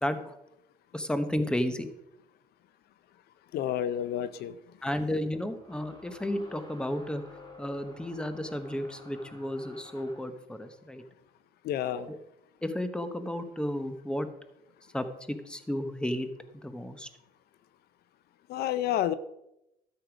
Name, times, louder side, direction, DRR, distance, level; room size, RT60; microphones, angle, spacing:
voice 1, 0.0-0.3 0.9-1.9 4.8-7.2 7.6-11.0 12.1-12.2 12.6-14.3 14.9-16.3 16.6-17.1, left 1 dB, 5° left, 9 dB, 1.0 m, -32 dB
voice 2, 3.5-4.5 11.6-12.1 18.5-19.1, left 11 dB, 70° left, 15 dB, 0.6 m, -29 dB
sound 1, 5.5-10.3, left 1 dB, 25° left, 3.0 m, -51 dB
13.0 x 6.6 x 5.1 m, 0.87 s
cardioid pair, 110°, 17 cm